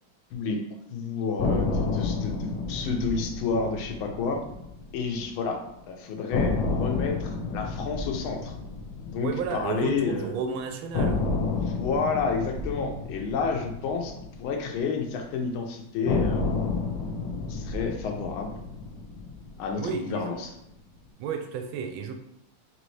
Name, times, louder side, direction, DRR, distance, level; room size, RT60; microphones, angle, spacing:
voice 1, 0.3-4.5 4.9-8.6 9.1-10.3 11.7-16.4 17.5-18.6 19.6-20.5, left 4 dB, 90° left, 4 dB, 1.5 m, -30 dB
sound 1, 1.4-5.5 5.7-5.8 6.3-10.4 10.9-15.3 16.0-20.4, left 3 dB, 60° left, 1.1 m, -31 dB
voice 2, 9.2-11.4 19.8-20.4 21.2-22.1, right 6 dB, 80° right, 6 dB, 1.4 m, -32 dB
4.0 x 3.4 x 3.1 m, 0.82 s
omnidirectional pair, 2.2 m